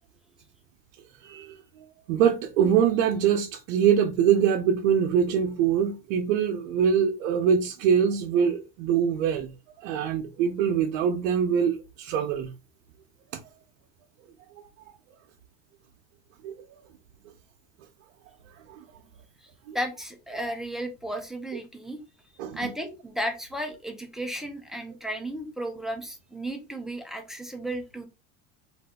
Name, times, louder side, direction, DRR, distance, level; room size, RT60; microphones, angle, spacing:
voice 1, 1.2-1.5 2.1-9.5 9.8-12.5 16.4-16.5 19.7-19.8 22.4-22.6, right 8 dB, 80° right, 0.6 m, -23 dB
voice 2, 19.7-22.0 22.5-28.1, right 1 dB, ahead, 0.3 m, -34 dB
2.7 x 2.4 x 3.4 m
supercardioid pair, 125°, 38 cm